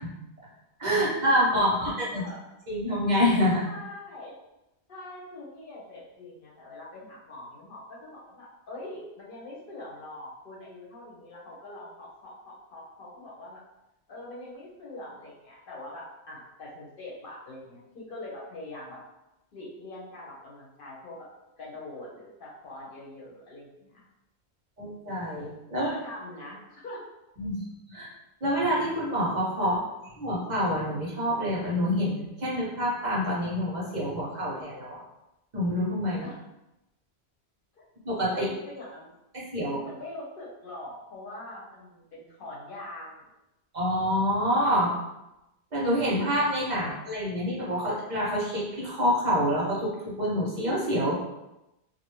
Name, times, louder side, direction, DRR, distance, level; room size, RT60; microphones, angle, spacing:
voice 1, 0.8-2.2 2.7-3.6 24.8-25.9 27.4-28.1 28.4-29.8 30.2-35.0 35.5-36.3 38.0-38.5 39.3-39.8 43.7-44.9 45.7-51.2, equal, 50° right, -6 dB, 0.7 m, -27 dB
voice 2, 3.6-4.3 4.9-13.6 14.1-19.0 19.5-21.3 21.6-24.0 25.7-27.0 29.6-29.7 36.2-36.4 37.7-37.8 38.3-39.1 39.8-43.3, left 1 dB, 60° left, -5 dB, 0.8 m, -43 dB
2.5 x 2.1 x 3.1 m, 0.93 s
omnidirectional pair, 1.1 m